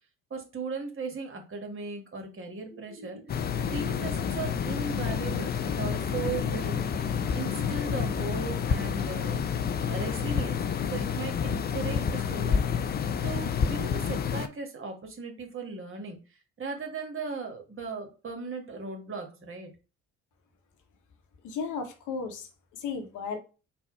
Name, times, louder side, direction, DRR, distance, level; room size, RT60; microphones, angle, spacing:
voice 1, 0.3-6.8 7.3-9.4 9.9-10.7 10.9-16.2 16.6-19.7, right 4 dB, 35° right, 1.4 m, -37 dB
sound 1, 2.7-7.7, right 2 dB, 5° left, 1.8 m, -50 dB
sound 2, 3.3-14.5, left 7 dB, 30° left, 0.5 m, -29 dB
voice 2, 21.4-23.4, left 5 dB, 55° left, 1.0 m, -35 dB
4.1 x 2.3 x 4.4 m
hypercardioid pair, 50°, 36 cm